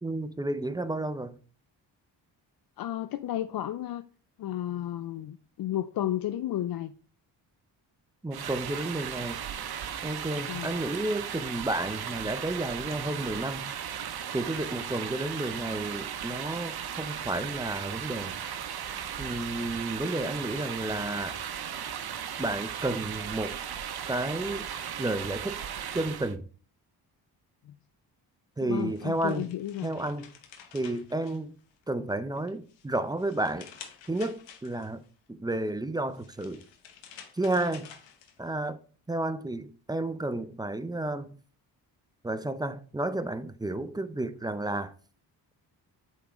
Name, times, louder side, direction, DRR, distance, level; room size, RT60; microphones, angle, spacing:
voice 1, 0.0-1.4 8.2-9.4 10.0-13.7 14.3-18.4 19.2-21.4 22.4-23.6 24.1-24.7 25.0-25.6 25.9-26.5 28.6-29.5 29.8-30.3 30.7-31.5 31.9-33.7 34.1-35.0 35.3-36.6 37.3-37.9 38.4-38.8 39.1-41.4 42.2-44.9, right 2 dB, 10° right, 0.5 m, -31 dB
voice 2, 2.8-4.0 4.4-6.9 10.5-10.8 27.7-27.8 28.6-30.0, left 12 dB, 55° left, 0.5 m, -33 dB
sound 1, 8.3-26.3, right 8 dB, 55° right, 0.8 m, -36 dB
sound 2, 28.6-31.9 32.4-35.1 36.0-38.7, left 8 dB, 80° left, 1.0 m, -51 dB
8.2 x 3.7 x 3.0 m
supercardioid pair, 60°, 44 cm